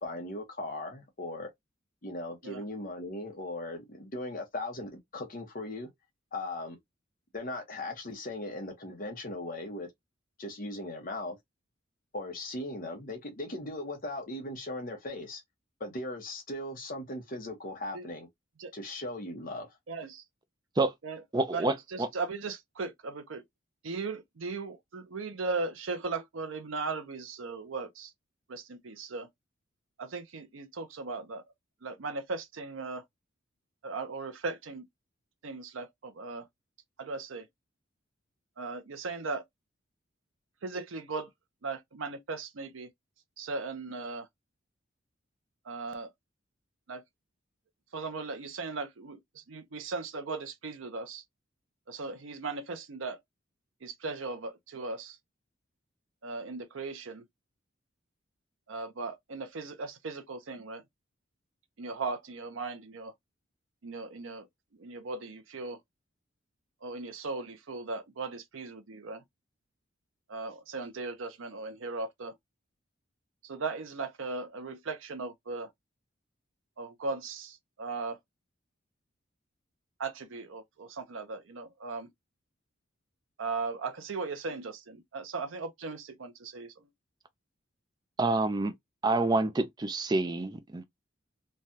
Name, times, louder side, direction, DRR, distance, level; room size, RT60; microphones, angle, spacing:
voice 1, 0.0-1.5 2.0-5.9 6.3-6.8 7.3-9.9 10.4-11.4 12.1-15.4 15.8-18.3 18.7-19.8, left 2 dB, 45° left, 1.0 m, -38 dB
voice 2, 19.9-20.2 21.0-21.2 21.5-23.4 23.8-28.1 28.5-29.3 30.0-31.4 31.8-33.0 33.8-34.8 35.4-36.5 37.0-37.5 38.6-39.4 40.6-41.3 41.6-42.9 43.4-44.3 45.6-46.1 46.9-47.0 47.9-51.2 51.9-53.2 53.8-55.2 56.2-57.2 58.7-60.8 61.8-63.1 63.8-64.5 64.7-65.8 66.8-69.2 70.3-72.3 73.4-75.7 76.8-78.2 80.0-82.1 83.4-86.9, right 3 dB, 80° right, 0.6 m, -37 dB
voice 3, 21.3-21.7 88.2-88.7 89.0-90.8, right 2 dB, 20° right, 0.4 m, -27 dB
3.2 x 2.3 x 2.6 m
head